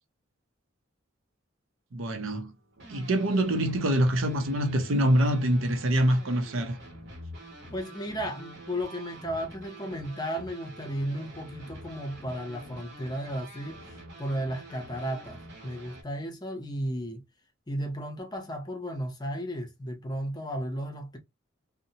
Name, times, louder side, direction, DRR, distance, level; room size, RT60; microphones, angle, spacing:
voice 1, 1.9-2.5 2.9-6.8, right 1 dB, 75° right, 0.6 m, -25 dB
sound 1, 2.3-16.0, right 1 dB, 55° right, 1.0 m, -47 dB
voice 2, 7.7-17.2 17.7-21.2, equal, 20° left, 0.6 m, -34 dB
2.6 x 2.1 x 2.7 m
head